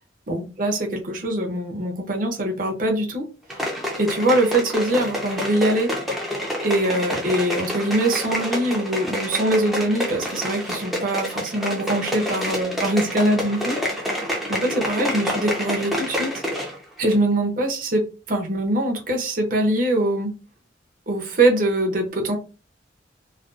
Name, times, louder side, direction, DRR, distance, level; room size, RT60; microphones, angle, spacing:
voice 1, 0.3-3.6 4.0-5.9 6.6-13.8 14.5-16.4 17.0-20.3 21.1-22.4, right 1 dB, 45° right, 0.6 m, -23 dB
sound 1, 3.5-16.8 17.1-17.2, equal, ahead, 0.5 m, -28 dB
2.4 x 2.3 x 2.4 m
head